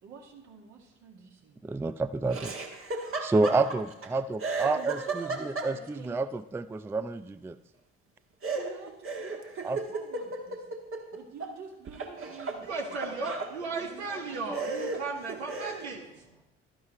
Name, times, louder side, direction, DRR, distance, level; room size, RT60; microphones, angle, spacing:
voice 1, 0.0-1.6 4.7-6.2 8.5-10.7 11.1-13.4 13.7-14.6, right 5 dB, 60° right, 1.9 m, -48 dB
voice 2, 1.6-2.5 3.2-5.8 6.0-7.6 9.6-9.8, right 3 dB, 10° right, 0.3 m, -29 dB
Laughter, 2.3-4.1 4.4-6.1 8.4-11.5 11.9-13.5 14.1-14.2 14.5-15.9, right 3 dB, 40° right, 1.5 m, -35 dB
voice 3, 12.6-16.4, right 4 dB, 85° right, 1.1 m, -36 dB
12.0 x 11.0 x 3.2 m
hypercardioid pair, 50°, 32 cm